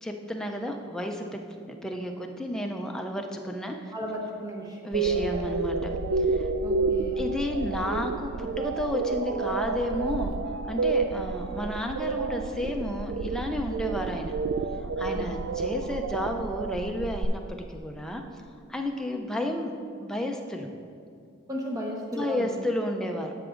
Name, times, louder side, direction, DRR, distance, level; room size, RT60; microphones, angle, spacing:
voice 1, 0.0-3.9 4.8-6.5 7.2-10.4 10.7-14.3 15.0-17.4 17.7-18.2 18.7-19.7 20.0-20.7 22.1-23.3, left 1 dB, 5° left, 2 dB, 0.4 m, -32 dB
voice 2, 3.9-4.9 6.6-7.2 15.1-15.4 21.5-22.5, equal, 15° right, -1 dB, 0.9 m, -35 dB
sound 1, 4.9-17.2, right 4 dB, 65° right, 0.3 m, -30 dB
14.5 x 5.9 x 2.5 m, 2.4 s
head